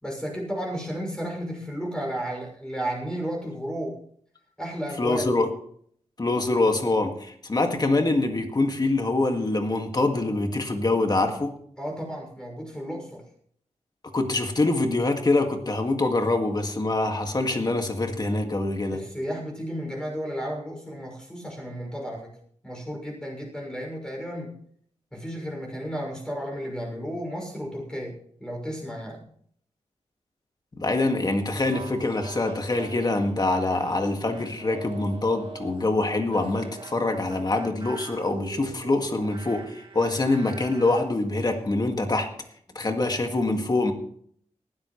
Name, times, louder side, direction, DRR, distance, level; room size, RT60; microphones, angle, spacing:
voice 1, 0.0-4.0 4.6-5.2 11.8-13.2 18.9-22.3 22.6-24.5 25.1-29.2, equal, 5° left, -1 dB, 6.2 m, -33 dB
voice 2, 5.0-5.5 6.2-11.5 14.1-19.0 30.7-42.3 42.8-43.9, left 2 dB, 35° left, 4 dB, 2.0 m, -25 dB
sound 1, 31.5-35.9 36.3-41.1, right 5 dB, 45° right, 2.3 m, -44 dB
18.5 x 13.5 x 3.2 m, 0.63 s
wide cardioid pair, 125°, 12 cm